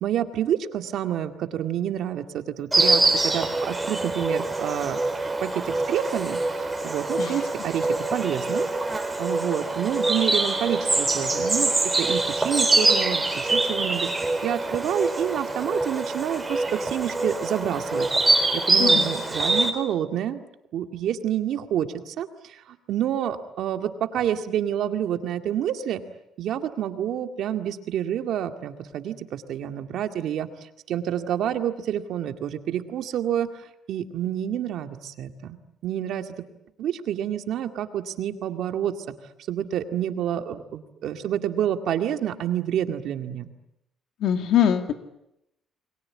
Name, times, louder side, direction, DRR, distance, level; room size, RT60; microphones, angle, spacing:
voice 1, 0.0-5.0 5.4-6.4 6.8-8.7 9.2-11.7 12.0-14.1 14.4-18.1 18.5-20.4 20.7-26.0 26.4-33.5 33.9-35.6 35.8-36.4 36.8-38.9 39.5-43.5, right 10 dB, 65° right, 7 dB, 2.1 m, -28 dB
Insect, 2.7-19.7, right 2 dB, 10° right, 3.8 m, -24 dB
voice 2, 44.2-44.9, left 9 dB, 65° left, 7 dB, 2.5 m, -22 dB
29.5 x 22.0 x 8.7 m, 0.84 s
cardioid pair, 135°, 0 cm